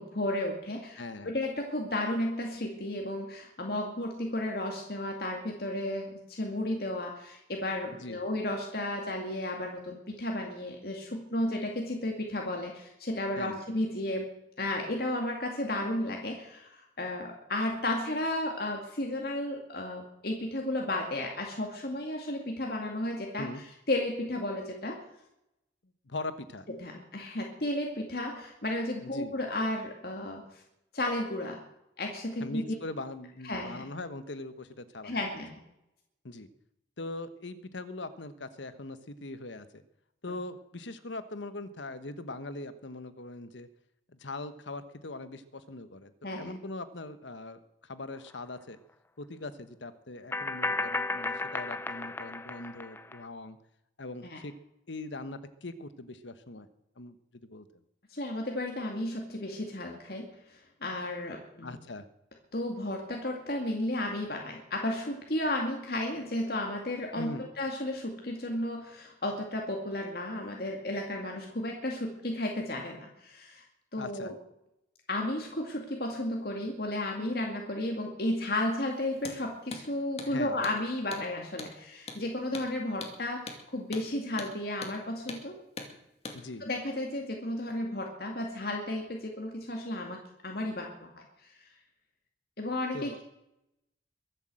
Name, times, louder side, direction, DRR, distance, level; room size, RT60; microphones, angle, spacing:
voice 1, 0.0-14.3 14.6-23.5 23.9-25.0 26.8-30.6 30.9-31.6 32.0-32.7 33.4-33.9 35.0-35.6 46.2-46.5 54.2-54.4 58.1-61.7 62.5-73.6 73.9-74.4 75.1-85.6 86.6-91.6 92.6-93.2, left 1 dB, 55° left, 1 dB, 2.2 m, -33 dB
voice 2, 1.0-1.3 8.0-8.2 13.4-13.6 23.4-23.6 26.1-26.7 29.0-29.3 32.4-35.2 36.2-36.5 37.0-39.8 40.2-43.7 44.1-46.1 46.4-48.8 49.2-53.6 54.0-54.5 54.9-56.7 57.0-57.6 61.6-62.0 67.2-67.5 74.0-74.3 80.3-80.6 86.3-86.7 92.9-93.2, left 2 dB, 85° left, 12 dB, 1.2 m, -41 dB
sound 1, 48.3-48.4 50.3-53.2, left 3 dB, 10° left, 0.5 m, -34 dB
Hammer, 79.2-79.4 79.7-79.8 80.2-80.3 80.6-80.8 81.1-81.3 81.6-81.7 82.1-82.2 82.5-82.7 83.0-83.2 83.5-83.6 83.9-84.1 84.4-84.5 84.8-85.0 85.3-85.4 85.8-85.9 86.2-86.4, left 3 dB, 35° left, 2.3 m, -41 dB
22.5 x 8.3 x 7.7 m, 0.84 s
head